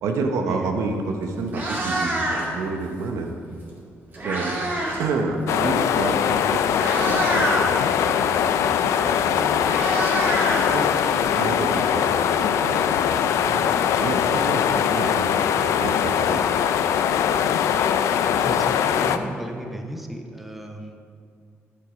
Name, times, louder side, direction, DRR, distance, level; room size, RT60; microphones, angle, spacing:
voice 1, 0.0-3.3 4.2-4.6 5.0-7.7 8.0-9.6 10.5-10.9 11.3-13.7 14.0-16.4, right 3 dB, 85° right, 4 dB, 1.0 m, -29 dB
Meow, 0.9-1.0 1.4-2.7 3.7-5.1 5.3-5.6 6.3-6.4 6.7-7.7 9.0-9.1 9.3-11.2, right 1 dB, 40° right, 2.7 m, -26 dB
sound 1, 5.5-19.2, left 8 dB, 85° left, 0.4 m, -21 dB
voice 2, 18.4-21.0, right 1 dB, 5° right, 3 dB, 0.8 m, -34 dB
11.0 x 6.8 x 5.1 m, 2.3 s
cardioid pair, 115°, 5 cm